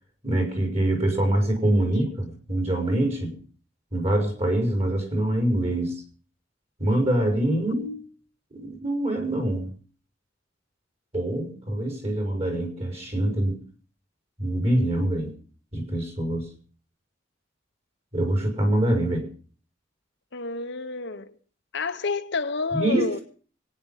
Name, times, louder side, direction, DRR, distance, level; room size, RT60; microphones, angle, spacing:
voice 1, 0.2-3.3 3.9-6.0 6.8-8.0 8.5-9.7 11.1-13.6 14.4-15.3 15.7-16.5 18.1-19.3 22.7-23.1, right 1 dB, 35° right, 5.4 m, -24 dB
voice 2, 20.3-21.3 21.7-23.2, left 3 dB, 65° left, 1.1 m, -29 dB
25.0 x 9.8 x 5.6 m
head